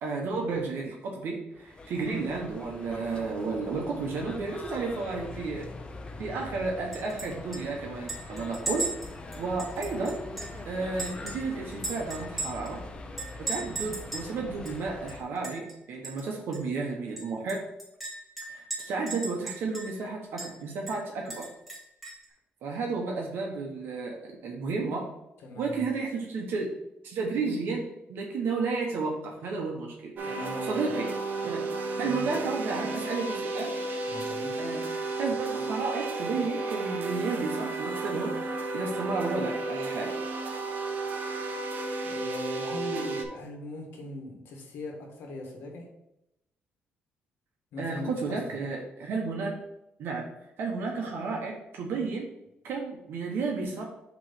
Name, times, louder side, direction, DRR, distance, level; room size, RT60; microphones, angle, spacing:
voice 1, 0.0-5.7 6.2-9.1 9.4-10.2 10.7-12.8 13.4-17.6 18.5-21.5 22.6-25.1 25.6-26.7 27.0-30.1 30.7-31.1 31.4-31.6 32.0-33.7 34.6-34.8 35.2-40.2 47.8-49.5 50.0-50.3 50.6-52.3 52.6-53.8, right 4 dB, 75° right, 0 dB, 1.0 m, -32 dB
sound 1, 1.5-15.2, left 2 dB, 25° left, 0.7 m, -43 dB
Chink clink, 6.9-7.3 7.5-7.6 8.1-10.6 11.0-12.7 13.2-14.3 14.7-14.8 15.1-15.7 16.0-16.2 16.5-16.6 17.2-20.0 20.4-20.5 20.9-22.3, right 2 dB, 5° right, 2.3 m, -37 dB
voice 2, 25.4-25.8 30.2-30.8 32.0-32.4 34.1-34.6 42.0-45.9 47.7-48.4, left 2 dB, 80° left, 1 dB, 1.5 m, -39 dB
sound 2, 30.2-43.3, right 3 dB, 55° right, 0.8 m, -33 dB
6.0 x 3.1 x 5.7 m, 0.86 s
cardioid pair, 115°, 4 cm